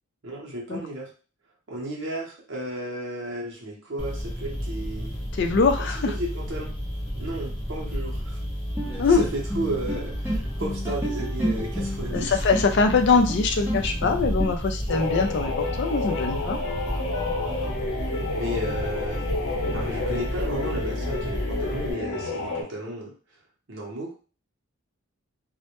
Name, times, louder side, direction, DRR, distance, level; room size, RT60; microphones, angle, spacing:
voice 1, 0.2-1.1 1.7-5.1 5.8-6.8 7.2-8.4 8.9-12.4 18.3-19.2 19.7-23.1 23.7-24.1, right 1 dB, 60° right, -2 dB, 0.7 m, -33 dB
sound 1, 4.0-21.9, equal, 20° left, 0.9 m, -32 dB
voice 2, 5.4-6.1 9.0-9.2 12.1-16.6, left 4 dB, 50° left, 4 dB, 0.3 m, -22 dB
sound 2, 8.8-14.5, equal, 10° right, 0.5 m, -32 dB
sound 3, 14.9-22.6, left 3 dB, 80° left, 0.7 m, -30 dB
2.1 x 2.0 x 2.9 m, 0.37 s
head